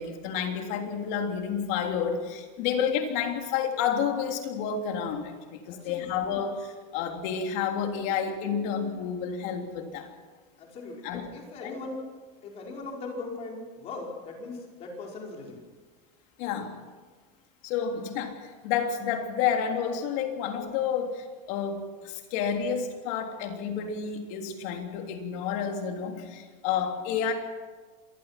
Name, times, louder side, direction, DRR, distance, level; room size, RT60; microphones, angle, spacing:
voice 1, 0.0-10.1 11.0-11.2 11.6-11.8 16.4-16.7 17.6-27.3, left 7 dB, 55° left, 3 dB, 3.4 m, -30 dB
voice 2, 5.6-6.1 10.6-12.1 12.4-15.6, left 3 dB, 30° left, -1 dB, 5.2 m, -39 dB
26.5 x 20.0 x 6.0 m, 1.4 s
cardioid pair, 175°, 20 cm